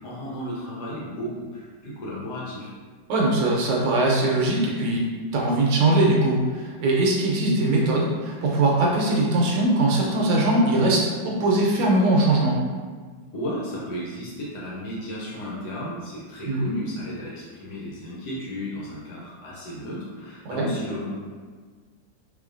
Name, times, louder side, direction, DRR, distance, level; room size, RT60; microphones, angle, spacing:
voice 1, 0.0-2.7 13.3-21.2, equal, 65° left, -6 dB, 1.1 m, -34 dB
voice 2, 3.1-5.0 5.3-12.6 16.5-16.6 20.4-20.7, right 2 dB, 75° right, -2 dB, 1.3 m, -21 dB
3.7 x 3.1 x 2.5 m, 1.5 s
omnidirectional pair, 2.1 m